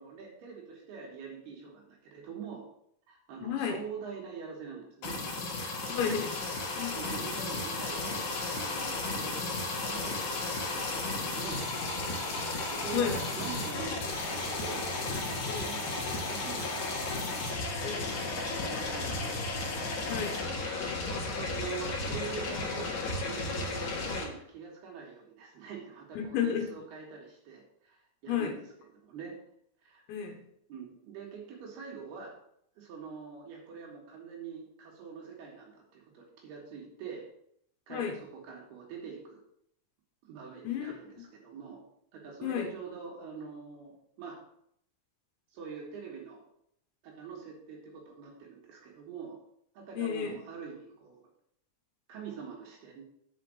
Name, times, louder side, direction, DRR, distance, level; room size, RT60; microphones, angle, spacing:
voice 1, 0.0-2.6 3.1-5.2 7.0-11.6 12.4-14.9 15.3-17.1 18.6-19.4 21.4-28.6 29.0-29.3 29.8-30.0 30.7-32.3 32.8-37.2 37.9-38.2 38.5-39.4 40.2-41.8 42.1-44.4 45.5-46.4 47.0-49.4 49.8-51.2 52.1-53.0, right 6 dB, 65° right, -2 dB, 3.7 m, -44 dB
voice 2, 3.4-3.8 5.6-6.4 6.8-7.0 12.9-13.2 15.5-15.7 17.8-18.3 20.1-20.4 26.2-26.7 28.3-28.5 30.1-30.4 37.9-38.2 40.6-40.9 42.4-42.7 50.0-50.4, left 8 dB, 85° left, 3 dB, 3.4 m, -32 dB
sound 1, 5.0-24.2, left 2 dB, 55° left, 2.6 m, -34 dB
7.7 x 5.1 x 7.5 m, 0.71 s
omnidirectional pair, 5.0 m